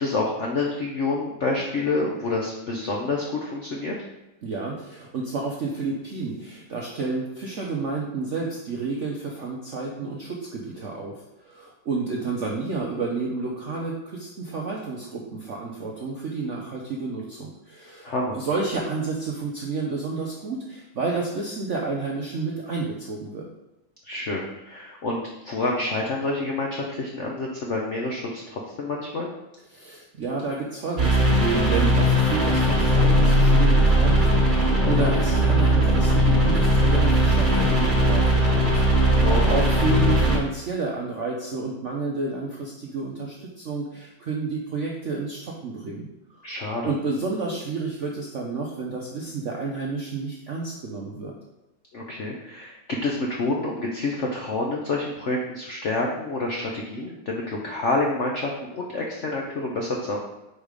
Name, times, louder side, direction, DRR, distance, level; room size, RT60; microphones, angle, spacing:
voice 1, 0.0-4.0 12.9-13.0 18.0-18.4 24.0-29.3 39.2-39.6 46.4-46.9 51.9-60.2, left 2 dB, 70° left, -1 dB, 0.7 m, -28 dB
voice 2, 4.4-23.5 29.7-46.4 46.8-51.3, right 4 dB, 65° right, -1 dB, 0.7 m, -30 dB
sound 1, 31.0-40.4, equal, 30° right, 1.3 m, -19 dB
4.8 x 4.1 x 5.1 m, 0.98 s
omnidirectional pair, 2.2 m